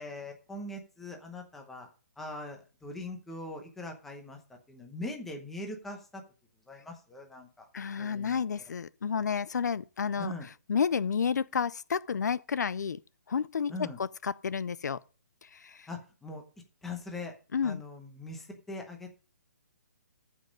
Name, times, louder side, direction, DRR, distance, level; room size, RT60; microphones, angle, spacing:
voice 1, 0.0-1.9 2.2-4.4 4.7-6.2 6.7-7.7 8.0-8.4 10.2-10.5 13.7-14.0 15.9-16.4 16.8-17.3 17.6-19.1, left 2 dB, ahead, 0.9 m, -41 dB
voice 2, 7.7-10.3 10.7-13.0 13.3-15.0 15.4-15.9 17.5-17.8, left 6 dB, 75° left, 0.4 m, -31 dB
14.0 x 5.3 x 5.3 m
hypercardioid pair, 180°, 9 cm